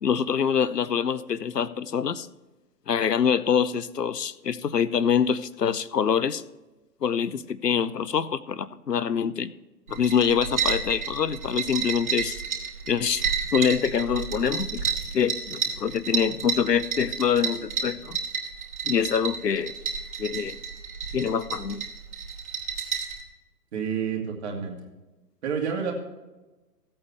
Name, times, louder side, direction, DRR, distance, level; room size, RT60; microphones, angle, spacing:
voice 1, 0.0-2.3 2.9-6.4 7.0-9.5 9.9-12.4 12.9-14.8 15.1-18.2 18.9-19.7 20.2-20.6 21.1-21.8, left 7 dB, 75° left, 17 dB, 0.8 m, -25 dB
sound 1, 9.9-23.2, right 6 dB, 60° right, 3.3 m, -31 dB
voice 2, 23.7-24.8 25.4-25.9, right 7 dB, 40° right, 1 dB, 2.4 m, -29 dB
16.0 x 8.7 x 3.4 m, 1.1 s
figure-of-eight pair, 130°, 49 cm